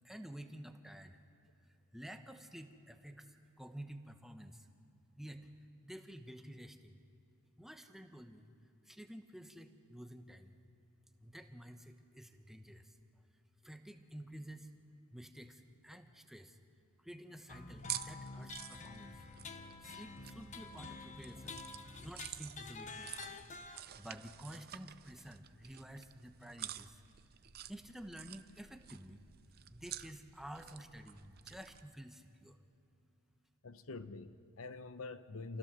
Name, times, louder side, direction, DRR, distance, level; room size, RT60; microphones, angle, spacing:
voice 1, 0.0-1.2 1.7-4.7 5.2-5.5 5.8-7.0 7.6-8.5 8.8-10.5 11.2-13.0 13.6-14.7 15.1-16.6 17.0-19.3 19.8-21.6 22.0-23.2 23.7-27.0 27.7-29.2 29.7-32.6, equal, ahead, 1.0 m, -51 dB
sound 1, 17.5-23.8, left 4 dB, 35° left, 1.1 m, -49 dB
sound 2, 17.8-31.8, right 12 dB, 45° right, 0.5 m, -50 dB
voice 2, 33.6-35.6, left 3 dB, 70° left, 0.8 m, -46 dB
28.5 x 15.5 x 6.8 m
head